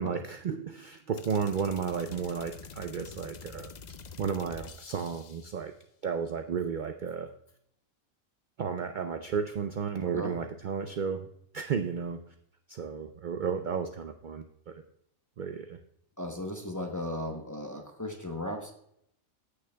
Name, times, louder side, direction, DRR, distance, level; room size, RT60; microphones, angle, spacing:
voice 1, 0.0-3.7 4.2-5.7 6.0-7.3 8.6-12.2 12.7-14.8 15.4-15.8, right 6 dB, 75° right, 7 dB, 0.4 m, -33 dB
sound 1, 1.2-5.6, left 6 dB, 75° left, 0.4 m, -47 dB
voice 2, 10.0-10.4 16.2-18.7, left 1 dB, 20° left, 3 dB, 0.6 m, -36 dB
15.0 x 6.5 x 2.2 m, 0.75 s
omnidirectional pair, 1.4 m